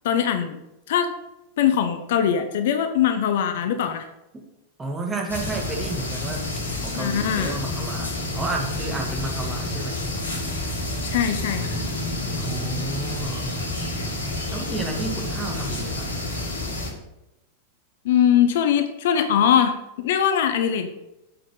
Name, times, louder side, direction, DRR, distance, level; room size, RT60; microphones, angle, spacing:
voice 1, 0.0-0.6 0.9-1.1 1.6-4.1 7.0-7.6 11.0-11.8 18.0-20.9, left 9 dB, 55° left, 8 dB, 0.9 m, -21 dB
voice 2, 4.8-6.5 6.8-10.1 12.4-13.6 14.5-16.1, right 3 dB, 15° right, 1 dB, 2.1 m, -31 dB
sound 1, 5.3-16.9, left 2 dB, 75° left, 2.4 m, -29 dB
9.0 x 7.6 x 5.6 m, 0.92 s
figure-of-eight pair, 90°, 0 cm